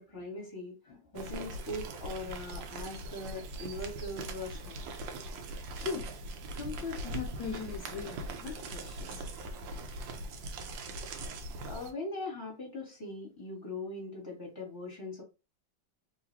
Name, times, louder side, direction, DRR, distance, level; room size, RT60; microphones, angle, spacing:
voice 1, 0.0-4.8 11.6-15.2, left 2 dB, 10° left, 1.8 m, -41 dB
sound 1, 1.1-11.9, right 2 dB, 75° right, 1.4 m, -41 dB
voice 2, 5.8-6.1 6.5-9.5 9.9-10.0 10.8-10.9, left 6 dB, 70° left, 1.5 m, -40 dB
3.9 x 3.1 x 2.8 m
omnidirectional pair, 2.2 m